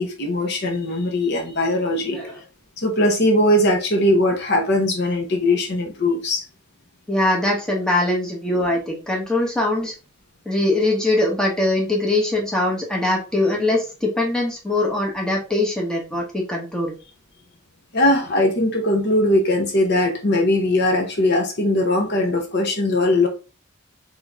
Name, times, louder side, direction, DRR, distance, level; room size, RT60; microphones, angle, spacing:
voice 1, 0.0-2.2 2.8-6.4 17.9-23.3, left 1 dB, 55° left, 0.9 m, -20 dB
voice 2, 7.1-9.9 10.4-16.9, left 2 dB, 5° left, 1.1 m, -22 dB
3.9 x 3.7 x 3.5 m
head